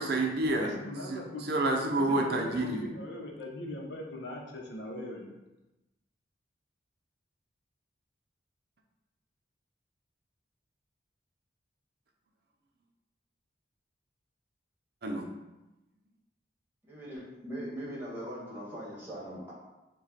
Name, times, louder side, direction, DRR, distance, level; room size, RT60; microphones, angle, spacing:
voice 1, 0.0-0.7 1.1-2.9 15.0-15.3, right 2 dB, 55° right, 2 dB, 0.5 m, -29 dB
voice 2, 0.6-1.5 2.0-5.3, left 1 dB, 70° left, -1 dB, 0.8 m, -40 dB
voice 3, 16.9-19.5, equal, 10° right, -6 dB, 1.2 m, -40 dB
5.0 x 2.3 x 4.1 m, 1.0 s
head